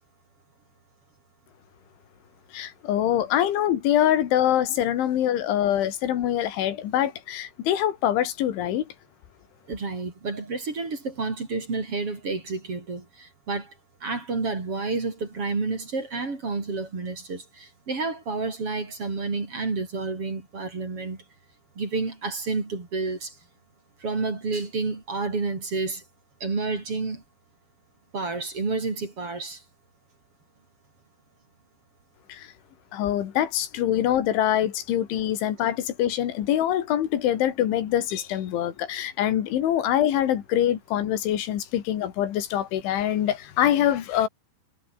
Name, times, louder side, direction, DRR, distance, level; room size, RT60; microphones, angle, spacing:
voice 1, 2.5-8.9 32.3-32.5 32.9-44.3, left 11 dB, 85° left, 4.6 m, -24 dB
voice 2, 9.7-13.7 14.0-21.2 21.8-23.3 24.0-26.0 26.4-27.2 28.1-29.6, right 3 dB, 30° right, 4.8 m, -30 dB
omnidirectional pair, 5.3 m